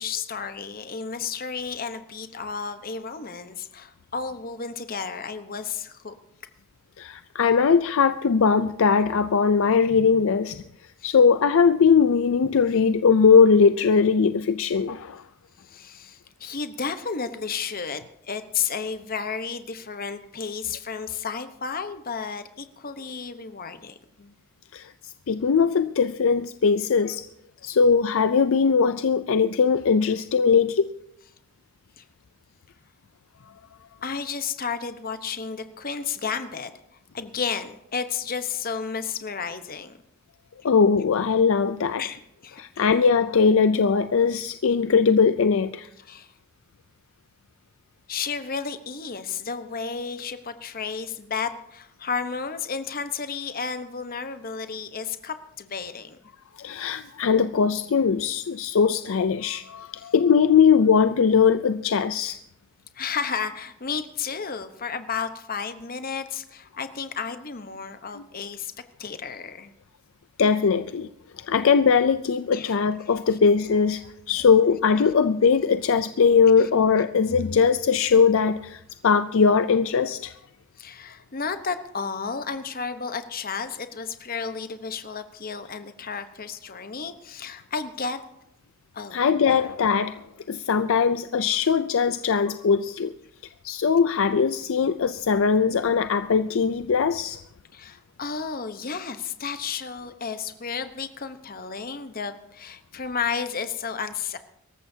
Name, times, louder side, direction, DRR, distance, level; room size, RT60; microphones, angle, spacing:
voice 1, 0.0-6.1 11.0-11.1 15.6-24.3 32.0-32.1 34.0-36.7 37.1-40.0 42.0-42.9 46.0-46.3 48.1-56.2 60.0-60.1 62.9-68.7 69.0-69.7 72.5-72.7 76.6-76.7 80.8-88.2 88.9-89.2 89.5-89.6 97.7-104.4, left 5 dB, 40° left, 1.0 m, -32 dB
voice 2, 7.0-10.6 11.0-15.2 24.7-27.2 27.6-30.9 40.6-42.0 42.6-45.9 56.6-62.4 70.4-71.1 71.4-74.0 74.3-80.3 89.1-90.2 90.5-93.1 93.6-97.4, left 5 dB, 60° left, 0.4 m, -20 dB
24.5 x 14.0 x 2.8 m
head